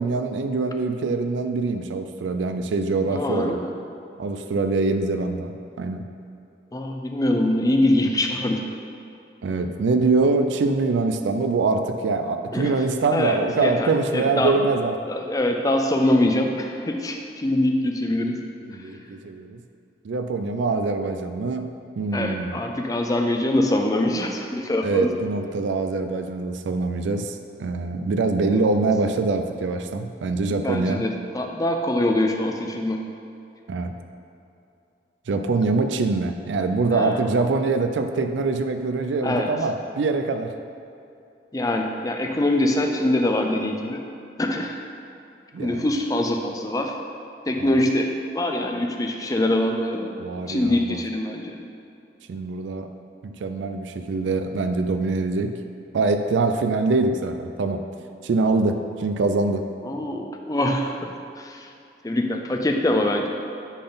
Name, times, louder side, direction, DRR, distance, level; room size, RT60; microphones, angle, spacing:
voice 1, 0.0-3.6 4.2-6.0 9.4-14.9 18.6-19.6 20.0-21.7 22.0-22.6 24.8-31.0 33.7-33.9 35.3-40.5 45.5-45.9 47.6-47.7 50.2-51.0 52.3-52.9 53.2-55.5 55.9-57.8 58.2-59.6, right 3 dB, 85° right, 7 dB, 0.4 m, -24 dB
voice 2, 3.1-3.7 6.7-8.6 12.5-12.8 13.1-14.7 15.1-18.4 22.1-25.1 28.5-28.6 30.5-33.0 36.9-37.3 39.2-39.5 41.5-44.0 44.4-44.8 45.6-46.9 47.5-50.1 50.5-51.6 59.8-61.7 62.0-63.3, left 1 dB, 20° left, 3 dB, 0.4 m, -24 dB
10.0 x 3.9 x 3.9 m, 2.7 s
head